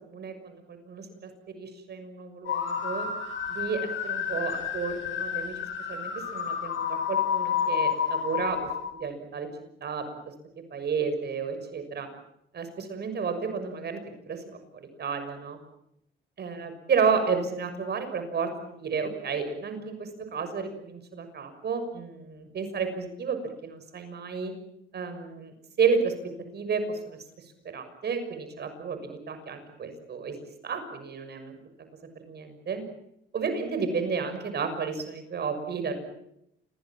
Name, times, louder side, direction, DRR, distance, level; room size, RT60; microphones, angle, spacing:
voice 1, 0.0-3.1 3.5-5.6 5.9-9.5 9.8-10.0 10.7-12.1 12.5-14.4 14.7-15.6 16.4-24.5 24.9-26.1 26.5-27.2 27.7-30.3 30.6-31.5 32.3-32.8 33.3-36.0, right 5 dB, 55° right, 8 dB, 6.4 m, -31 dB
sound 1, 2.5-8.9, left 7 dB, 80° left, 5.5 m, -30 dB
28.5 x 22.0 x 7.4 m, 0.79 s
cardioid pair, 90°, 20 cm